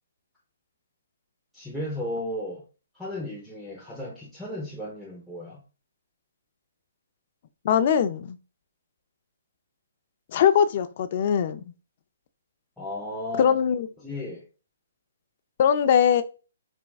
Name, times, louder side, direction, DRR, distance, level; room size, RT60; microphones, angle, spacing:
voice 1, 1.5-2.6 2.9-5.6 12.8-13.6 14.0-14.4, left 1 dB, ahead, 0.6 m, -34 dB
voice 2, 7.6-8.4 10.3-11.6 13.4-13.9 15.6-16.2, left 8 dB, 40° left, 0.4 m, -21 dB
4.3 x 3.4 x 2.3 m
hypercardioid pair, 165°, 0 cm